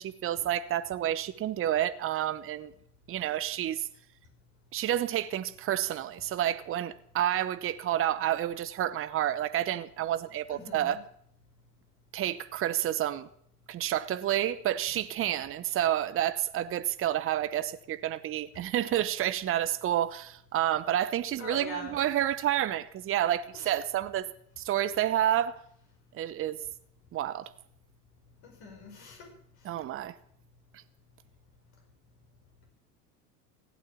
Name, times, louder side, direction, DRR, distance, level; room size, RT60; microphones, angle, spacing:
voice 1, 0.0-2.7 3.1-3.9 4.7-11.0 12.1-13.3 13.7-24.3 24.6-25.6 26.1-26.6 27.1-27.5 29.6-30.1, right 12 dB, 30° right, 0.9 m, -29 dB
voice 2, 10.5-11.0 21.4-22.0 23.5-23.8 28.4-29.3, left 3 dB, 50° left, 4.9 m, -43 dB
16.0 x 8.6 x 8.4 m
hypercardioid pair, 85°, 47 cm